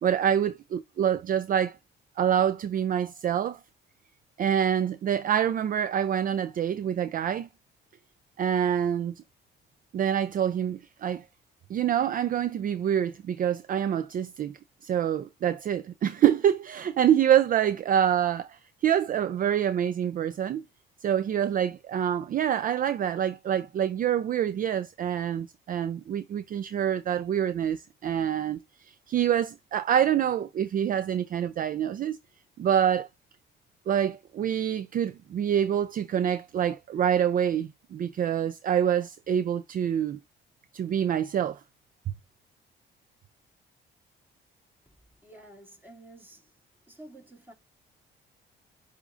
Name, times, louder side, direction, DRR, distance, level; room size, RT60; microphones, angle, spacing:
voice 1, 0.0-1.8 2.2-3.6 4.4-7.5 8.4-9.2 9.9-11.2 11.7-20.6 21.0-32.2 32.6-33.1 33.9-40.2 40.7-41.6, right 9 dB, 45° right, 0.4 m, -26 dB
voice 2, 45.2-46.4 46.9-47.5, right 1 dB, 10° right, 2.4 m, -50 dB
8.0 x 2.7 x 2.4 m
cardioid pair, 90°, 20 cm